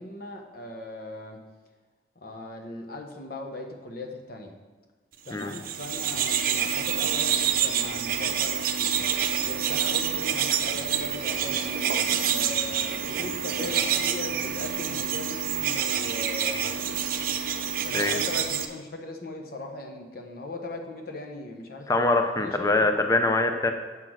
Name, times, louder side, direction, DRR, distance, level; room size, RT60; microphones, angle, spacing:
voice 1, 0.0-1.4 2.2-4.5 5.2-8.9 9.4-16.7 17.8-22.9, left 2 dB, 55° left, 2 dB, 1.0 m, -39 dB
sound 1, 5.4-18.7, right 8 dB, 50° right, 0.6 m, -27 dB
voice 2, 21.9-23.7, left 2 dB, 20° left, 6 dB, 0.5 m, -23 dB
7.5 x 6.0 x 6.3 m, 1.3 s
head